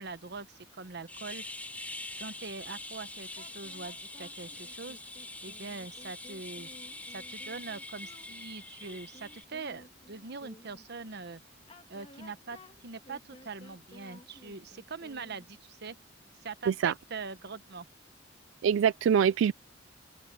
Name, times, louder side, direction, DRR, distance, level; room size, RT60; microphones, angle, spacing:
voice 1, 0.0-1.4 2.2-5.0 5.4-6.7 7.1-11.4 11.9-16.0 16.4-17.9, right 4 dB, 60° right, 1.0 m, -43 dB
sound 1, 1.1-9.4, left 2 dB, 10° left, 2.2 m, -44 dB
sound 2, 3.3-10.9 11.6-15.6, left 1 dB, 30° left, 2.3 m, -55 dB
voice 2, 18.6-19.5, right 8 dB, 75° right, 0.3 m, -24 dB
open air
head